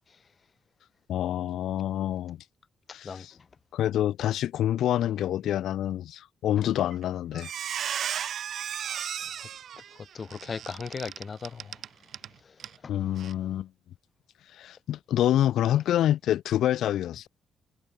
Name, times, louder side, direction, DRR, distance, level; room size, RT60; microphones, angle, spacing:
voice 1, 1.1-2.4 2.9-3.3 3.7-7.5 12.9-13.7 14.6-17.3, left 12 dB, 75° left, 1.6 m, -27 dB
Squeak, 6.8-7.0 7.3-12.3 12.6-12.8 13.2-13.3, right 9 dB, 65° right, 2.4 m, -35 dB
voice 2, 10.1-11.7 12.8-12.9, left 5 dB, 40° left, 3.5 m, -37 dB
cardioid pair, 90°, 0 cm